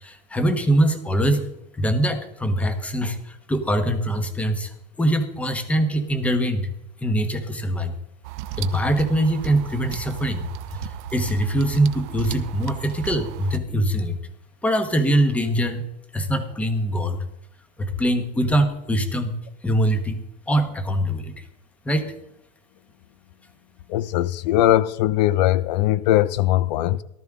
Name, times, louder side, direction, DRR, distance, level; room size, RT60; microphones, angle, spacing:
voice 1, 0.0-1.5 1.7-4.7 5.0-6.7 7.0-7.9 8.6-14.2 14.6-15.8 16.1-17.2 17.8-19.3 19.6-20.2 20.5-21.4 21.8-22.1, right 1 dB, 5° left, 1.2 m, -23 dB
sound 1, 8.2-13.6, right 12 dB, 50° right, 0.8 m, -35 dB
voice 2, 23.9-27.0, left 14 dB, 80° left, 0.6 m, -20 dB
18.0 x 12.5 x 3.7 m
supercardioid pair, 165°, 21 cm